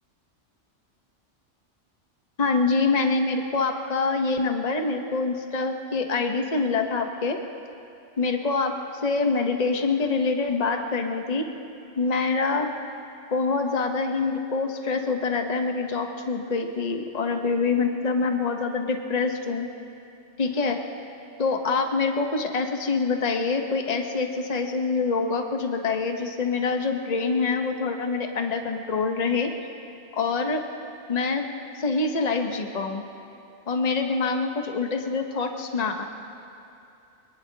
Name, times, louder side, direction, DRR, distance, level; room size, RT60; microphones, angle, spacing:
voice 1, 2.4-7.4 8.2-8.7 9.0-11.5 12.0-12.7 13.3-19.7 20.4-20.8 21.4-29.5 30.2-30.6 31.1-31.5 31.8-33.0 33.7-36.0, left 4 dB, 35° left, 4 dB, 1.1 m, -25 dB
25.0 x 19.5 x 2.8 m, 2.7 s
omnidirectional pair, 1.3 m